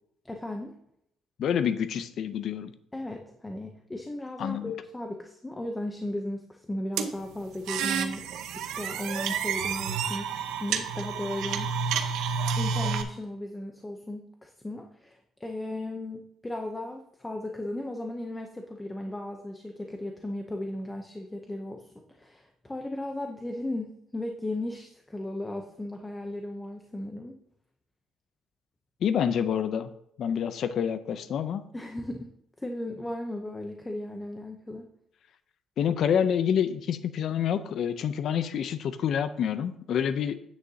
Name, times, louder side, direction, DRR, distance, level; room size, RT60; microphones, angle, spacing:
voice 1, 0.2-0.7 2.9-8.3 8.5-11.7 12.6-27.4 31.7-32.3 32.6-34.9, left 1 dB, 10° left, 3 dB, 0.6 m, -36 dB
voice 2, 1.4-2.7 4.4-4.7 29.0-29.9 30.2-31.6 35.8-40.3, left 8 dB, 50° left, 11 dB, 0.5 m, -27 dB
sound 1, 7.0-13.0, right 6 dB, 85° right, 0.8 m, -30 dB
9.5 x 8.7 x 2.8 m, 0.77 s
cardioid pair, 155°, 0 cm